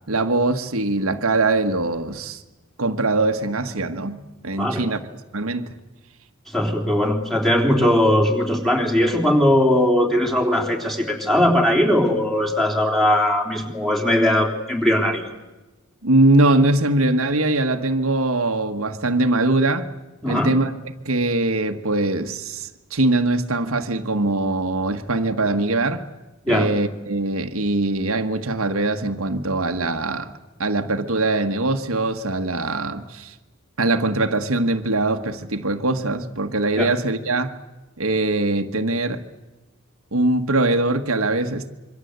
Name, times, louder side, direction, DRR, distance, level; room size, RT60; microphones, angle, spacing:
voice 1, 0.1-2.4 2.8-5.0 5.3-5.8 16.0-19.9 20.2-20.7 21.0-26.0 26.5-30.3 30.6-33.3 33.8-37.5 38.0-39.2 40.1-41.7, right 2 dB, 80° right, 1.5 m, -22 dB
voice 2, 6.5-15.3 20.2-20.5 26.4-26.7 36.8-36.9, left 1 dB, ahead, 3.7 m, -19 dB
26.5 x 24.0 x 8.1 m
head